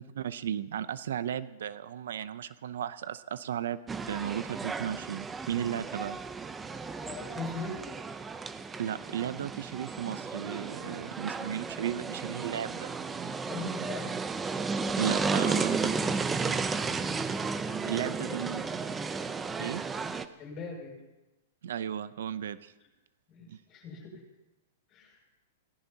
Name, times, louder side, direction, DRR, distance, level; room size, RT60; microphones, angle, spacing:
voice 1, 0.0-3.8 4.1-6.2 8.8-12.9 15.0-16.0 16.5-16.6 17.9-18.6 19.6-19.8 21.6-22.7 23.5-23.6, right 9 dB, 80° right, 15 dB, 0.6 m, -35 dB
sound 1, 3.9-20.3, right 4 dB, 15° right, 0.6 m, -33 dB
voice 2, 7.0-7.9 13.5-14.1 14.7-15.3 18.1-18.3 20.4-21.0 23.3-24.1 24.9-25.2, left 3 dB, 25° left, -2 dB, 7.8 m, -41 dB
26.0 x 18.0 x 2.9 m, 1.0 s
hypercardioid pair, 145°, 0 cm